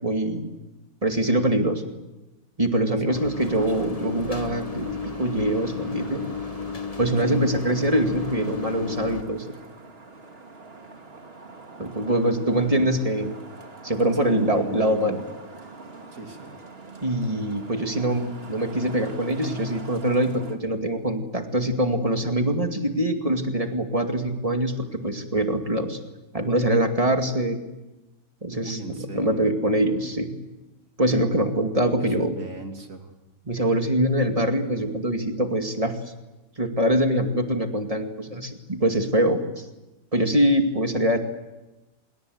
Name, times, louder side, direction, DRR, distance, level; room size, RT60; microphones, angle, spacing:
voice 1, 0.0-0.5 1.0-1.9 2.6-6.2 7.0-9.5 11.8-13.4 13.8-15.2 17.0-24.7 25.0-26.0 26.3-27.6 28.4-30.3 31.0-32.4 33.5-36.0 36.6-39.6 40.1-41.2, right 1 dB, 25° right, 5 dB, 2.4 m, -24 dB
voice 2, 2.9-3.3 7.2-7.4 12.5-12.9 14.1-15.2 16.1-16.6 28.5-29.5 32.0-33.1, right 3 dB, 60° right, 4 dB, 3.1 m, -37 dB
sound 1, 3.1-9.2, left 5 dB, 25° left, 1.1 m, -33 dB
Traffic noise roadway noise, 3.4-20.6, right 3 dB, 40° right, 2.3 m, -44 dB
26.0 x 22.5 x 8.0 m, 1.0 s
omnidirectional pair, 1.6 m